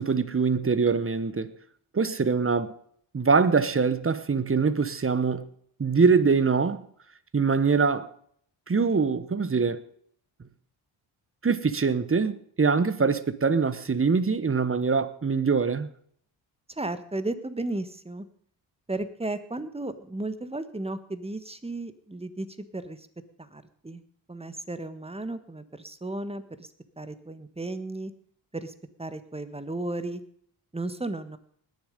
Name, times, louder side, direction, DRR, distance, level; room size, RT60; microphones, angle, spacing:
voice 1, 0.0-1.5 1.9-2.7 3.1-5.5 5.8-6.8 7.3-8.1 8.7-9.8 11.4-15.9, right 5 dB, 30° right, 1.1 m, -23 dB
voice 2, 16.7-18.2 18.9-22.5 22.7-23.1 23.4-24.0 24.3-28.1 28.5-30.2 30.7-31.4, right 2 dB, 10° right, 1.5 m, -34 dB
20.0 x 7.2 x 5.3 m
supercardioid pair, 60°, 47 cm